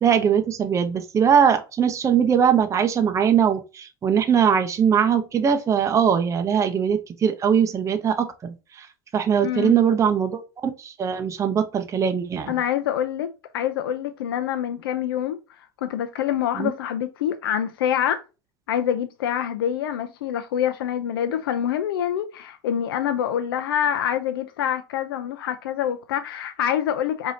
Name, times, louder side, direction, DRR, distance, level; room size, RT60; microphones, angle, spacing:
voice 1, 0.0-8.9 9.1-12.5 16.6-16.7, right 7 dB, 25° right, 0.6 m, -21 dB
voice 2, 9.4-9.7 12.5-13.3 13.5-18.2 18.7-27.3, left 10 dB, 85° left, 0.4 m, -26 dB
4.8 x 2.7 x 2.6 m
hypercardioid pair, 100°, 12 cm